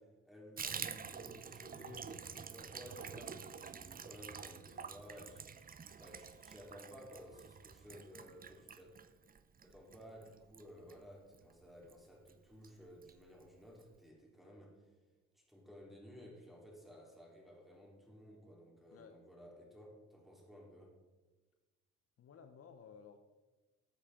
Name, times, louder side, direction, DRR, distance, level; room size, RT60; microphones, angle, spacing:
voice 1, 0.0-8.9 9.6-14.8 15.3-21.0, equal, ahead, -2 dB, 3.7 m, -56 dB
Water tap faucet / Bathtub (filling or washing), 0.6-11.5 11.8-12.0 12.3-12.4 12.6-13.1 13.4-13.5 13.8-13.9, right 6 dB, 30° right, 0.6 m, -48 dB
voice 2, 22.2-23.2, left 6 dB, 50° left, 6 dB, 0.9 m, -56 dB
14.5 x 8.2 x 3.8 m, 1.2 s
cardioid pair, 90°, 30 cm